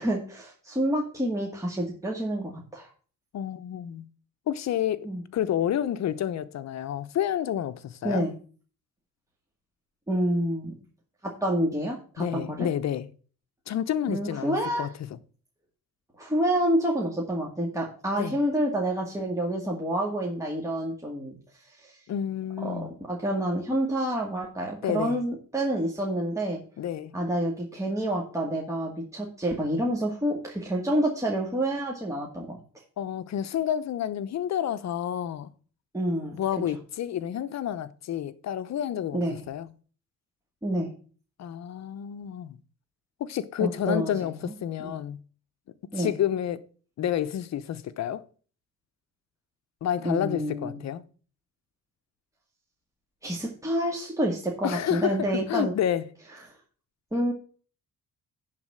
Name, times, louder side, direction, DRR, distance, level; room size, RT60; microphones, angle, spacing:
voice 1, 0.0-2.9 5.0-5.2 8.0-8.3 10.1-10.7 11.2-12.7 14.1-14.9 16.2-22.0 22.6-26.6 27.1-32.6 35.9-36.4 39.1-39.4 40.6-40.9 43.6-44.5 44.8-44.9 45.9-46.1 50.0-50.8 53.2-55.7 57.1-57.3, right 1 dB, 10° right, 2.2 m, -28 dB
voice 2, 3.3-4.0 4.5-8.3 12.2-13.1 13.7-14.9 18.2-18.3 22.1-22.9 24.8-25.2 26.8-27.1 33.0-35.5 36.3-39.2 39.5-39.7 41.4-42.6 43.2-45.2 45.9-46.7 47.0-48.3 49.8-51.0 54.6-55.2 55.5-56.0, left 10 dB, 60° left, 0.8 m, -29 dB
11.0 x 4.2 x 7.4 m
cardioid pair, 90°, 30 cm